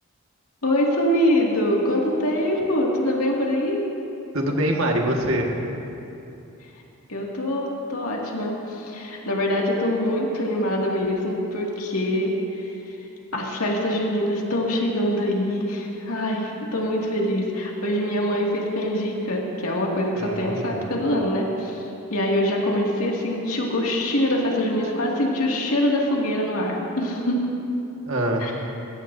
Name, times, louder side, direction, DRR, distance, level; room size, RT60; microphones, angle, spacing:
voice 1, 0.6-3.8 7.1-12.3 13.3-21.8 22.1-27.4 28.4-28.5, left 1 dB, 80° left, -2 dB, 2.2 m, -24 dB
voice 2, 4.3-5.5 20.2-20.9 28.0-28.4, right 1 dB, 65° right, 1 dB, 1.7 m, -24 dB
22.0 x 16.5 x 2.7 m, 2.8 s
head